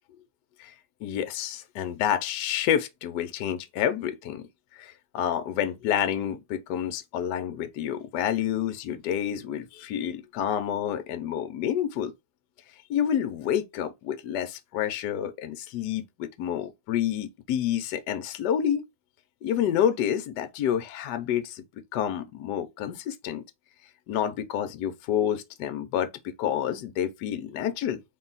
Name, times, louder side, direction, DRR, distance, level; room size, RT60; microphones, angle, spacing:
voice 1, 1.0-4.4 4.7-12.1 12.9-18.8 19.4-21.6 21.9-23.4 24.1-28.0, left 10 dB, 65° left, 1.1 m, -29 dB
3.8 x 2.3 x 3.9 m
omnidirectional pair, 2.3 m